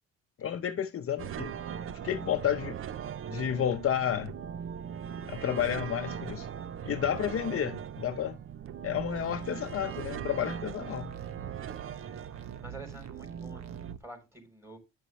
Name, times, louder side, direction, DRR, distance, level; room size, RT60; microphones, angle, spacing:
voice 1, 0.4-1.5 2.0-2.8 3.3-4.3 5.3-6.5 6.8-8.4 8.8-11.1, left 9 dB, 50° left, 0.7 m, -31 dB
sound 1, 1.2-13.9, right 8 dB, 45° right, 0.5 m, -40 dB
sound 2, 9.0-14.0, right 9 dB, 60° right, 0.9 m, -47 dB
voice 2, 12.6-13.6 14.0-14.8, right 2 dB, 10° right, 3.7 m, -48 dB
9.5 x 5.5 x 3.1 m
cardioid pair, 90°, 30 cm